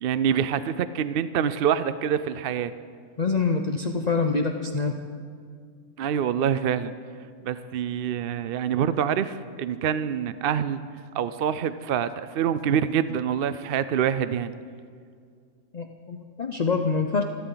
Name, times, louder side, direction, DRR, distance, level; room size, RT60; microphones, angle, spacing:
voice 1, 0.0-2.7 6.0-6.9 7.4-10.8 11.1-14.5, right 8 dB, 60° right, 13 dB, 0.6 m, -26 dB
voice 2, 3.2-4.9 15.7-17.2, left 4 dB, 40° left, 4 dB, 0.7 m, -25 dB
27.5 x 12.5 x 4.0 m, 2.1 s
omnidirectional pair, 1.3 m